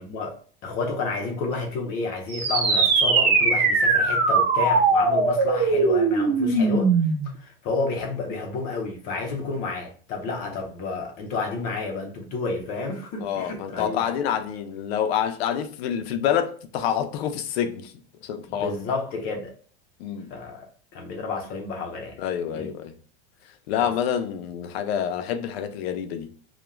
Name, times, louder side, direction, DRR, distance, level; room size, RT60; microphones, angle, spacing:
voice 1, 0.0-6.9 7.4-14.0 18.5-19.5 20.3-20.7 20.9-22.2 22.5-22.7 23.8-23.9, left 3 dB, 30° left, 0.4 m, -30 dB
sound 1, 2.3-7.3, right 3 dB, 35° right, 0.8 m, -20 dB
voice 2, 13.2-17.9 18.2-18.8 20.0-20.3 22.2-22.9 23.7-26.3, left 9 dB, 85° left, 0.5 m, -27 dB
2.4 x 2.1 x 2.9 m
supercardioid pair, 165°, 30 cm